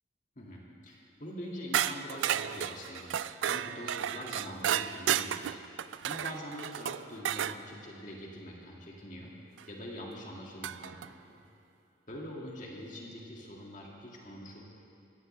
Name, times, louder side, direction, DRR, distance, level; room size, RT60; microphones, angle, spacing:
voice 1, 0.4-5.4 5.7-9.3 9.7-11.4 12.1-14.6, left 1 dB, 45° left, -2 dB, 2.1 m, -44 dB
sound 1, 1.7-7.6 9.6-9.7 10.6-11.1, right 10 dB, 85° right, 0.3 m, -32 dB
17.0 x 15.0 x 3.3 m, 2.6 s
head